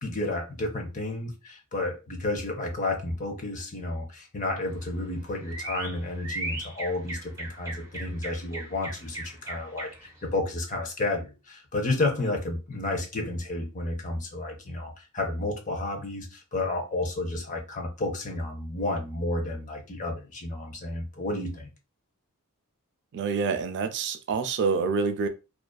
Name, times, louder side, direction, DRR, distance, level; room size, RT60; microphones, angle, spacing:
voice 1, 0.0-21.7, left 2 dB, 35° left, 0.6 m, -31 dB
sound 1, 4.6-10.2, right 2 dB, 15° right, 0.6 m, -39 dB
voice 2, 23.1-25.3, right 5 dB, 50° right, 0.3 m, -27 dB
2.4 x 2.3 x 2.2 m
head